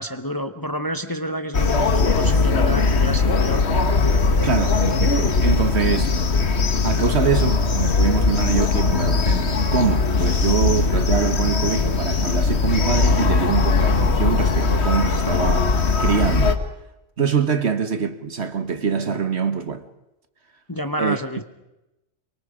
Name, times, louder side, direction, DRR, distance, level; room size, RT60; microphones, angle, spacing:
voice 1, 0.0-3.7 4.1-4.5 20.7-21.4, equal, 20° left, 1.0 m, -29 dB
sound 1, 1.5-16.5, left 4 dB, 60° left, 1.6 m, -20 dB
voice 2, 4.4-6.2 6.8-16.6 17.2-19.8 21.0-21.2, right 6 dB, 60° right, 1.6 m, -24 dB
24.5 x 24.5 x 5.1 m
omnidirectional pair, 1.3 m